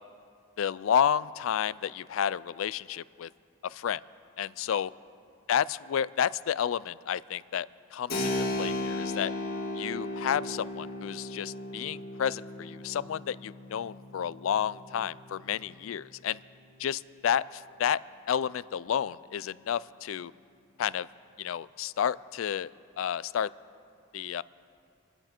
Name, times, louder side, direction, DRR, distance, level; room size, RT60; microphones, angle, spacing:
voice 1, 0.6-3.3 3.6-4.0 4.4-4.9 5.5-9.3 9.8-16.4 16.8-18.0 18.3-20.3 20.8-21.1 21.4-22.7 23.0-23.5 24.1-24.4, left 8 dB, 90° left, 19 dB, 0.4 m, -31 dB
Keyboard (musical), 8.1-16.5, left 1 dB, 50° left, 2.1 m, -36 dB
27.0 x 10.0 x 4.4 m, 2.5 s
head